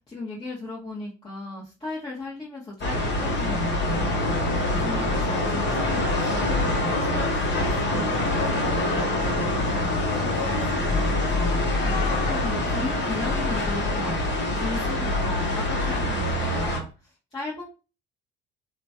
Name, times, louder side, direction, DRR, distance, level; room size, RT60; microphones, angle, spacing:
voice 1, 0.1-17.6, left 2 dB, 15° left, -8 dB, 1.3 m, -37 dB
sound 1, 2.8-16.8, left 2 dB, 35° left, 1.0 m, -25 dB
2.9 x 2.3 x 2.8 m, 0.32 s
figure-of-eight pair, 50°, 32 cm